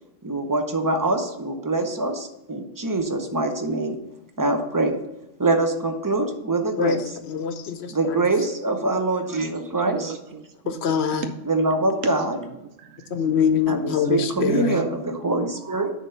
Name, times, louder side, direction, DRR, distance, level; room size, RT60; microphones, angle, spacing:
voice 1, 0.2-4.0 4.4-5.0 5.4-7.0 7.9-10.2 11.4-12.4 13.7-15.9, right 2 dB, 20° right, 5 dB, 0.6 m, -24 dB
voice 2, 7.3-8.2 10.7-11.3 13.1-14.8, left 6 dB, 60° left, 8 dB, 0.9 m, -24 dB
voice 3, 9.9-10.8 11.1-11.3 12.0-12.1 12.4-13.1 14.4-14.5 15.2-15.5, right 8 dB, 75° right, 8 dB, 1.0 m, -37 dB
9.9 x 3.6 x 5.6 m, 0.94 s
omnidirectional pair, 1.3 m